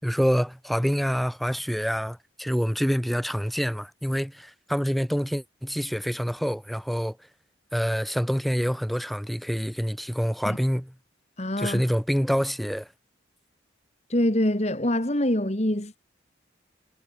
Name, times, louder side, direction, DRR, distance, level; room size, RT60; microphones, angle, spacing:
voice 1, 0.0-7.2 7.7-10.9 11.6-12.9, equal, ahead, 4.1 m, -26 dB
voice 2, 11.4-11.8 14.1-16.0, left 1 dB, 35° left, 2.2 m, -25 dB
head